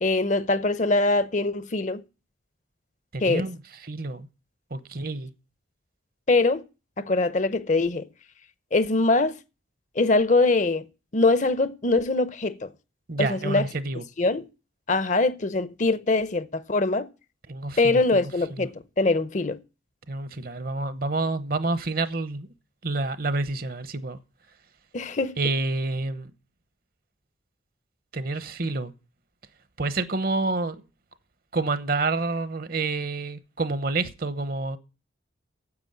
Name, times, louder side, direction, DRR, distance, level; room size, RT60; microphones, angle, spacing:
voice 1, 0.0-2.0 3.2-3.4 6.3-6.6 7.0-8.1 8.7-9.4 10.0-10.8 11.1-12.7 13.2-13.7 14.2-14.5 14.9-17.1 17.8-19.6 24.9-25.3, left 3 dB, 40° left, 0.7 m, -23 dB
voice 2, 3.1-3.6 3.8-4.3 4.7-5.3 13.1-14.0 17.5-18.0 18.6-18.7 20.1-22.5 22.8-24.2 25.4-26.3 28.1-28.9 29.8-30.8 31.5-34.8, right 3 dB, 50° right, 0.9 m, -28 dB
9.7 x 8.0 x 7.9 m
head